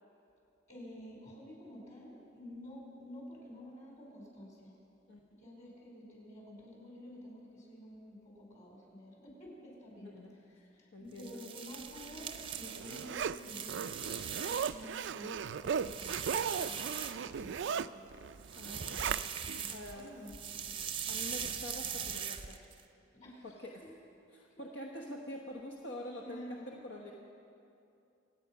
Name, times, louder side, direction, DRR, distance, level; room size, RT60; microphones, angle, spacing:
voice 1, 0.7-4.7 5.4-18.2 19.5-20.7 23.2-23.5 23.8-23.9 24.6-24.7 26.2-26.8, equal, 40° left, -2 dB, 4.6 m, -51 dB
voice 2, 10.0-10.3 10.9-11.4 18.5-19.3 19.7-20.2 21.1-22.6 23.4-23.8 24.3-27.1, left 1 dB, 65° left, 0 dB, 1.1 m, -46 dB
Ice Jel Pillow Smashing, 11.1-15.0 15.4-17.6 18.4-20.0 20.3-22.8, right 7 dB, 30° right, 0.7 m, -41 dB
Zipper (clothing), 12.0-19.6 20.0-20.1, right 7 dB, 65° right, 0.4 m, -37 dB
26.0 x 9.1 x 5.8 m, 2.7 s
head